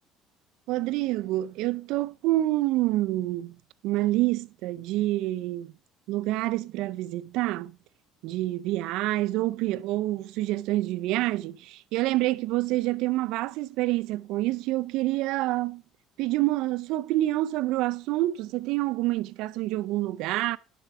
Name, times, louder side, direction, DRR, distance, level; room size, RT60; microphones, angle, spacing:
voice 1, 0.7-3.6 3.8-5.7 6.1-7.8 8.2-15.8 16.2-20.6, right 17 dB, 75° right, 0.5 m, -27 dB
11.5 x 6.8 x 4.8 m
cardioid pair, 125°, 0 cm